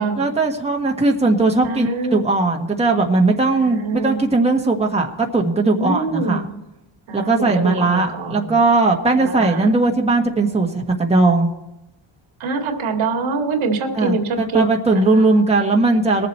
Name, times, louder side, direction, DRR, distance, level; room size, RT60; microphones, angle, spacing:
voice 1, 0.2-6.4 7.1-11.5 13.9-16.3, right 3 dB, 15° right, 1 dB, 1.5 m, -18 dB
voice 2, 1.6-2.2 3.5-4.3 5.8-6.4 7.1-8.6 9.2-9.7 12.4-14.6 15.2-15.4, right 3 dB, 85° right, 3 dB, 2.4 m, -24 dB
21.0 x 7.7 x 4.4 m, 0.93 s
cardioid pair, 120°, 47 cm